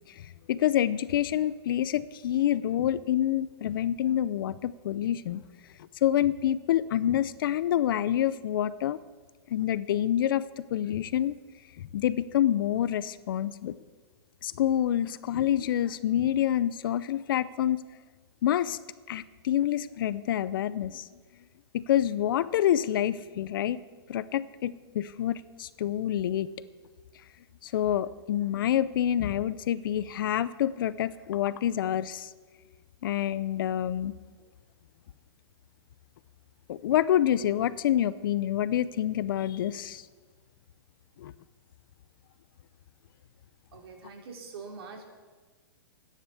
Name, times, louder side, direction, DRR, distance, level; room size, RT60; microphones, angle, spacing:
voice 1, 0.1-5.4 6.0-9.0 9.5-11.4 11.8-13.8 14.4-17.8 18.4-18.8 19.1-21.1 21.7-23.8 24.1-26.5 27.6-32.3 33.0-34.1 36.7-40.0 41.2-41.3, left 11 dB, 55° left, 17 dB, 0.6 m, -27 dB
voice 2, 43.7-45.0, right 4 dB, 70° right, 2 dB, 3.1 m, -44 dB
12.0 x 10.0 x 7.0 m, 1.4 s
hypercardioid pair, 160°, 13 cm